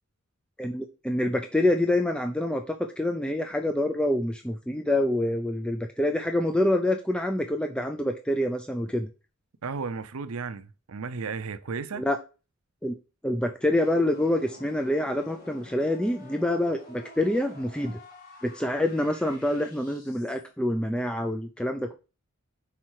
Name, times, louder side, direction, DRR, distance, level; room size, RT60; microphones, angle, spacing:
voice 1, 0.6-9.1 12.0-12.2 12.8-12.9 13.2-18.0 18.4-21.9, left 1 dB, 5° left, 0.5 m, -26 dB
voice 2, 9.6-12.0, right 5 dB, 75° right, 0.6 m, -34 dB
sound 1, 13.8-20.5, left 1 dB, 40° left, 2.1 m, -49 dB
5.8 x 4.4 x 4.7 m
head